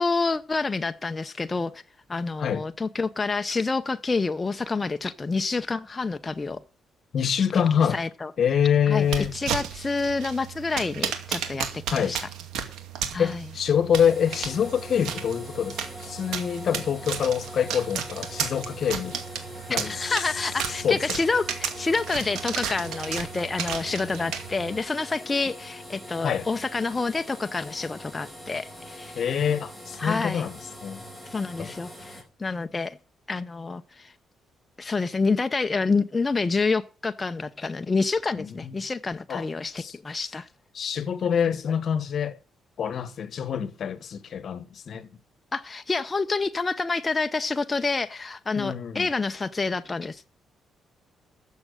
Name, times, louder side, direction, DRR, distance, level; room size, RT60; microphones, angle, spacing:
voice 1, 0.0-1.8 2.1-6.6 7.8-8.3 8.9-12.3 13.1-13.5 19.7-29.3 30.0-30.5 31.2-33.0 33.3-34.1 34.8-40.5 41.2-41.3 45.5-50.3, left 4 dB, 25° left, 0.7 m, -28 dB
voice 2, 7.1-8.0 8.4-9.3 11.9-12.1 13.2-19.2 19.7-19.9 20.8-21.0 26.2-26.4 29.2-30.5 30.8-31.0 31.6-31.7 38.4-38.7 39.3-39.4 39.8-39.9 40.7-42.4 42.8-45.1 48.5-49.1, left 8 dB, 60° left, 1.2 m, -25 dB
sound 1, 9.0-24.8, right 8 dB, 80° right, 2.3 m, -34 dB
sound 2, 13.9-32.2, left 1 dB, 10° right, 4.7 m, -43 dB
13.0 x 7.4 x 6.4 m
cardioid pair, 90°, 0 cm